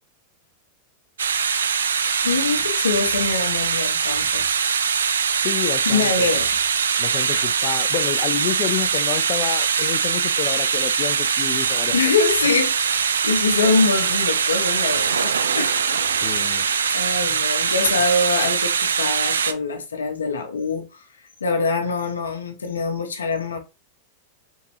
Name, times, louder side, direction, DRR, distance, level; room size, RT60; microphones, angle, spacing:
sound 1, 1.2-19.5, right 6 dB, 80° right, 0.3 m, -22 dB
voice 1, 2.2-4.6 5.3-5.4 5.9-6.6 7.3-7.5 11.9-15.8 16.5-21.1 21.4-23.6, left 4 dB, 85° left, 0.8 m, -24 dB
voice 2, 5.4-6.4 7.0-11.9 16.2-16.7, left 11 dB, 45° left, 0.5 m, -29 dB
3.6 x 2.9 x 2.9 m
hypercardioid pair, 100°, 0 cm